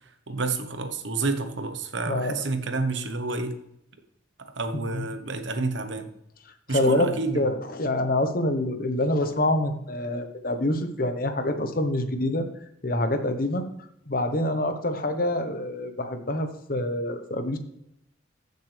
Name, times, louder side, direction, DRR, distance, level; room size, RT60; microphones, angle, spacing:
voice 1, 0.3-3.5 4.6-6.1 6.7-7.5, right 3 dB, 75° right, 8 dB, 1.1 m, -29 dB
voice 2, 2.1-2.4 4.7-5.1 6.7-12.5 12.8-13.6 14.1-17.6, left 1 dB, 50° left, 8 dB, 1.1 m, -26 dB
15.0 x 6.7 x 3.3 m, 0.78 s
head